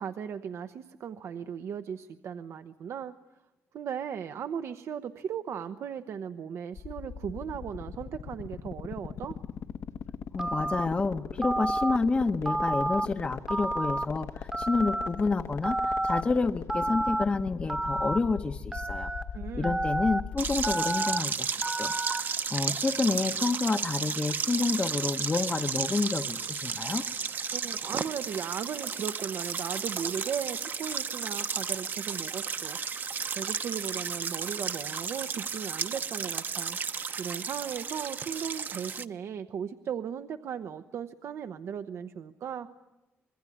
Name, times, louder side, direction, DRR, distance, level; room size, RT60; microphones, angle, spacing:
voice 1, 0.0-3.2 3.7-9.4 19.3-19.8 27.5-32.8 33.3-36.8 37.2-42.7, right 8 dB, 70° right, 9 dB, 0.9 m, -37 dB
sound 1, 6.7-20.7, left 7 dB, 75° left, 1.3 m, -38 dB
voice 2, 10.3-19.1 19.5-27.0, left 3 dB, 25° left, 7 dB, 0.8 m, -29 dB
Telephone, 10.4-10.9 11.4-12.0 12.5-13.1 13.5-14.1 14.5-15.1 15.6-16.2 16.7-17.2 17.7-18.2 18.7-19.2 19.6-20.2 20.6-21.2 21.6-22.2, right 1 dB, 10° right, 1.0 m, -30 dB
sound 2, 20.4-39.0, right 6 dB, 45° right, 0.9 m, -33 dB
26.0 x 21.5 x 9.9 m, 1.1 s
wide cardioid pair, 155°, 5 cm